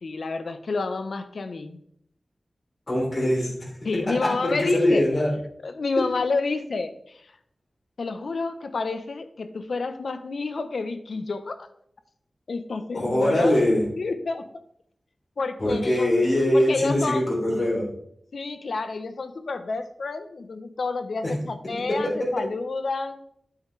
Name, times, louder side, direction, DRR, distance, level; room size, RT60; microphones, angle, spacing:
voice 1, 0.0-1.8 3.8-5.1 5.6-7.3 8.0-11.7 12.5-14.5 15.4-16.1 16.5-17.3 18.3-23.2, left 3 dB, 80° left, 10 dB, 0.7 m, -29 dB
voice 2, 2.9-3.7 4.2-5.3 12.9-13.9 15.6-17.9 21.2-21.3 21.9-22.1, left 1 dB, 45° left, -5 dB, 3.7 m, -22 dB
9.8 x 8.7 x 3.2 m, 0.72 s
wide cardioid pair, 105°, 0 cm